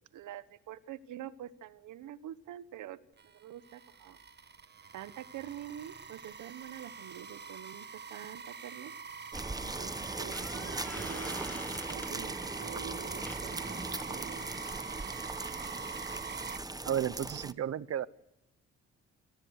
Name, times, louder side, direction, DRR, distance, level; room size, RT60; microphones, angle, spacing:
voice 1, 0.0-3.0 3.3-4.2 4.9-8.9 9.6-14.5, right 11 dB, 80° right, 14 dB, 1.3 m, -46 dB
sound 1, 3.2-16.6, right 6 dB, 35° right, 1.6 m, -45 dB
sound 2, 8.8-8.9 9.4-9.5 10.1-12.1 13.2-13.4 16.7-16.8 17.0-17.1, left 1 dB, 5° left, 1.6 m, -46 dB
sound 3, 9.3-17.5, right 2 dB, 10° right, 1.0 m, -39 dB
voice 2, 16.8-18.1, right 10 dB, 55° right, 17 dB, 1.0 m, -33 dB
27.5 x 18.5 x 6.6 m, 0.91 s
cardioid pair, 90°, 30 cm